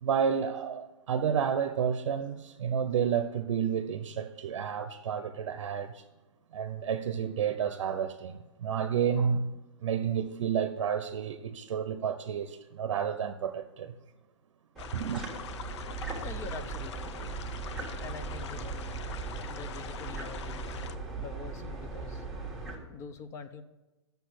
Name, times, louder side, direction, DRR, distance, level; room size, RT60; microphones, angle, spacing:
voice 1, 0.0-6.0 6.5-9.4 9.8-13.9 14.9-15.2, right 7 dB, 75° right, 0.6 m, -30 dB
sound 1, 14.8-21.0, left 8 dB, 65° left, 0.6 m, -44 dB
sound 2, 14.8-22.8, right 3 dB, ahead, 1.4 m, -38 dB
voice 2, 16.2-17.3 18.0-18.8 19.5-20.8 21.2-22.2 22.9-23.6, left 5 dB, 20° left, 0.5 m, -44 dB
8.1 x 6.9 x 6.1 m
hypercardioid pair, 145°, 16 cm